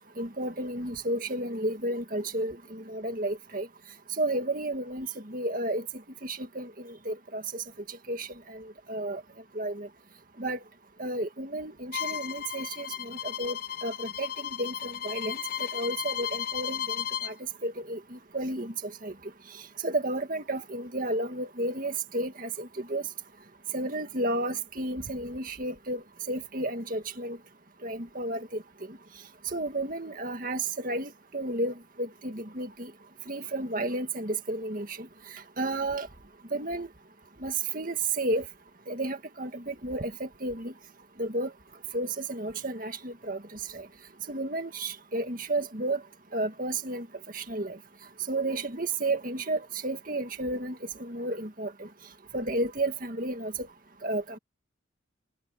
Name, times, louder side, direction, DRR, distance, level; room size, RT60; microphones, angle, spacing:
voice 1, 0.2-3.7 4.2-5.8 6.2-9.2 9.6-9.9 10.4-10.6 11.0-17.3 17.6-19.1 19.8-23.0 23.7-27.4 27.8-28.6 29.5-32.9 33.3-35.1 35.6-36.1 36.5-36.9 37.4-38.4 38.9-40.7 41.2-41.5 41.9-43.4 43.7-43.9 44.3-46.0 46.3-47.1 47.3-47.8 48.3-51.9 52.3-53.7 54.0-54.4, right 2 dB, 45° right, 2.1 m, -32 dB
Bowed string instrument, 11.9-17.3, left 9 dB, 50° left, 0.6 m, -34 dB
head